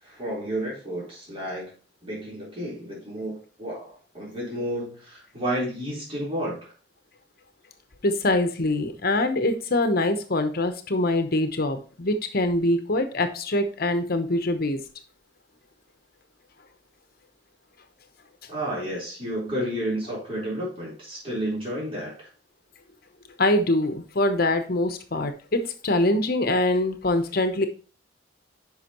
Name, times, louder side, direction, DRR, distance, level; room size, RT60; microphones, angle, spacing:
voice 1, 0.0-1.7 2.0-6.7 18.5-22.3, equal, 30° right, -6 dB, 4.0 m, -31 dB
voice 2, 8.0-14.8 23.4-27.7, left 1 dB, 55° left, 8 dB, 0.9 m, -24 dB
9.7 x 5.6 x 3.0 m, 0.38 s
head